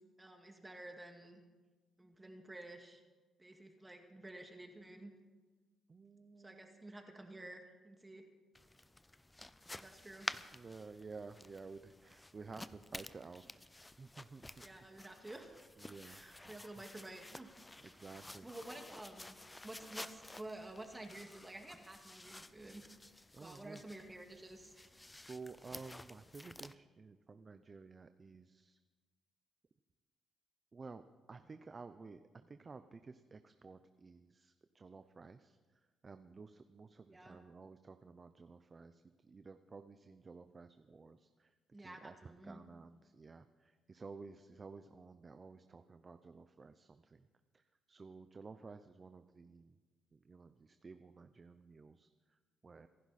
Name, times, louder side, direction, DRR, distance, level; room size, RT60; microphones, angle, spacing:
voice 1, 0.2-1.4 2.0-3.0 3.4-5.1 6.4-8.2 9.7-10.3 14.6-15.6 16.0-17.6 17.8-18.0 18.4-19.3 19.6-22.8 23.4-24.7 37.0-37.4 41.7-42.6, right 1 dB, 15° right, 4 dB, 2.0 m, -51 dB
voice 2, 5.9-6.9 9.7-9.8 10.3-13.6 14.0-14.6 15.8-16.5 17.8-18.5 23.3-23.8 25.2-28.8 30.7-47.3 47.5-49.8 50.1-52.9, right 4 dB, 35° right, 9 dB, 0.7 m, -53 dB
sound 1, 8.6-26.7, left 2 dB, 15° left, 0.5 m, -52 dB
26.0 x 11.0 x 4.3 m, 1.3 s
cardioid pair, 90°, 0 cm